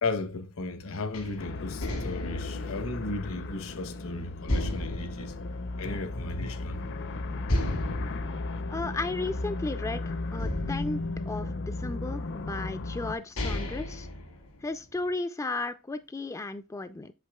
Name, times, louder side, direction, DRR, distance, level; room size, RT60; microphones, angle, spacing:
voice 1, 0.0-5.4 5.8-6.9, left 3 dB, 70° left, 1.0 m, -35 dB
sound 1, 1.1-3.9 4.5-6.4 6.8-6.9 7.4-9.8 10.4-12.0 12.7-12.8 13.2-15.0, left 1 dB, 85° left, 2.2 m, -34 dB
sound 2, 1.4-13.1, left 2 dB, 55° left, 0.6 m, -35 dB
voice 2, 8.7-11.0 11.3-14.1 14.6-17.1, left 2 dB, 15° left, 0.3 m, -34 dB
8.2 x 6.6 x 2.2 m
head